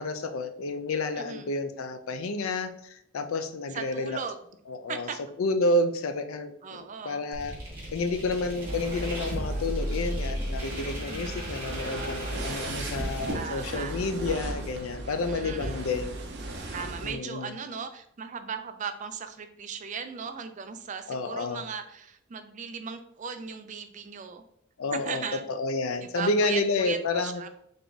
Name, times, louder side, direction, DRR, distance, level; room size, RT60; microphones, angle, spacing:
voice 1, 0.0-4.2 4.7-5.1 5.4-7.5 7.9-16.2 17.0-17.5 21.1-21.6 24.8-25.2 25.5-27.4, left 2 dB, 80° left, 8 dB, 0.5 m, -30 dB
voice 2, 1.2-1.5 3.7-4.4 4.9-5.2 6.6-7.3 11.1-11.5 13.3-13.9 15.0-15.9 16.7-24.4 24.9-25.4 26.1-27.5, right 6 dB, 35° right, 8 dB, 0.4 m, -37 dB
sound 1, 7.3-13.3, equal, 10° right, 1.5 m, -35 dB
sound 2, 8.6-17.1, right 1 dB, 55° right, 0.8 m, -36 dB
3.7 x 3.5 x 3.9 m, 0.72 s
head